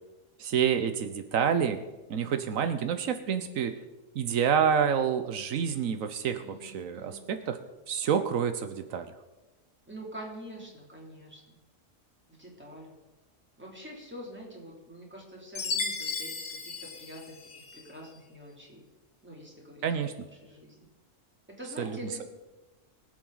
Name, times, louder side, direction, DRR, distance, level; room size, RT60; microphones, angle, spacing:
voice 1, 0.4-1.8 2.1-3.7 4.1-7.6 7.9-9.1 19.8-20.3 21.8-22.2, right 7 dB, 85° right, 9 dB, 1.2 m, -28 dB
voice 2, 6.4-7.2 9.9-11.6 12.4-12.9 13.6-18.8 19.2-20.0 20.4-20.8 21.5-22.2, equal, 10° right, -3 dB, 2.9 m, -45 dB
Chime, 15.6-17.9, left 4 dB, 75° left, 1.6 m, -35 dB
22.5 x 7.6 x 3.9 m, 1.1 s
omnidirectional pair, 1.4 m